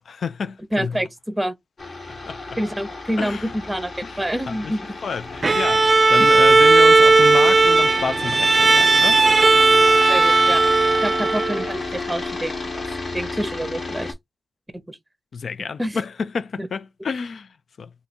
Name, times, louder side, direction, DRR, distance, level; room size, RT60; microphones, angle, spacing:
voice 1, 0.1-1.0 2.1-2.4 3.2-3.5 4.0-4.2 4.6-4.7 5.0-9.9 15.3-17.9, left 5 dB, 65° left, 0.3 m, -30 dB
voice 2, 0.7-1.5 2.6-3.4 3.7-3.9 4.2-4.8 6.2-6.3 10.1-10.6 11.0-12.8 13.1-14.1 14.7-15.0 15.8-16.0 16.6-16.7, equal, 10° right, 0.8 m, -27 dB
sound 1, 1.8-14.1, left 3 dB, 50° left, 1.3 m, -32 dB
Bowed string instrument, 5.4-11.7, right 3 dB, 40° right, 0.3 m, -15 dB
2.7 x 2.6 x 4.2 m
cardioid pair, 70°, 0 cm